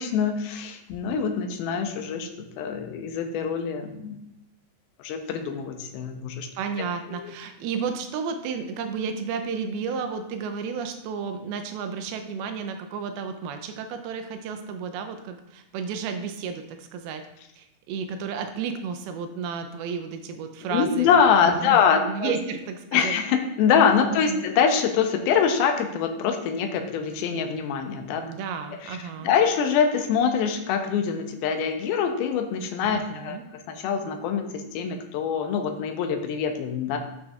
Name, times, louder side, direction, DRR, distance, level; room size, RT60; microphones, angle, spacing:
voice 1, 0.0-2.3 2.6-4.2 5.0-6.5 7.1-7.3 20.7-22.3 22.9-28.2 28.8-29.0 29.2-33.4 33.7-37.0, left 7 dB, 85° left, 5 dB, 2.6 m, -24 dB
voice 2, 6.6-17.2 17.6-21.1 21.4-23.2 24.1-24.4 28.2-29.3 32.9-33.4, right 6 dB, 85° right, 7 dB, 2.6 m, -32 dB
9.0 x 6.2 x 2.4 m, 0.85 s
omnidirectional pair, 4.3 m